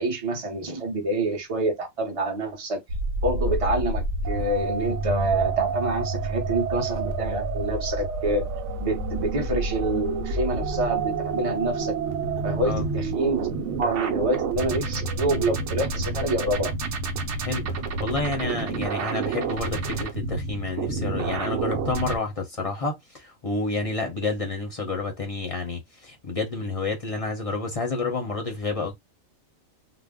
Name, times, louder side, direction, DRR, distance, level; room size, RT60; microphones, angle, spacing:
voice 1, 0.0-2.8 3.2-8.5 8.8-12.0 12.4-13.5 13.8-16.7, right 2 dB, 30° right, 0.8 m, -27 dB
sound 1, 2.9-22.2, right 3 dB, 65° right, 1.0 m, -29 dB
voice 2, 17.4-28.9, left 3 dB, 35° left, 0.6 m, -29 dB
2.5 x 2.1 x 3.5 m
omnidirectional pair, 1.4 m